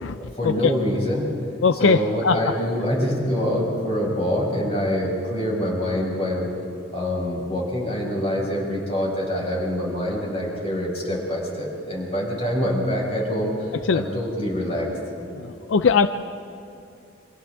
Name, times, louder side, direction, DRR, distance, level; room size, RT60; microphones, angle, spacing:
voice 1, 0.4-1.3 1.8-6.5 6.9-14.9, equal, 30° left, -3 dB, 5.3 m, -25 dB
voice 2, 1.6-2.4 13.9-14.0 15.4-16.1, left 5 dB, 85° left, 11 dB, 0.5 m, -20 dB
29.5 x 26.0 x 3.5 m, 2.6 s
head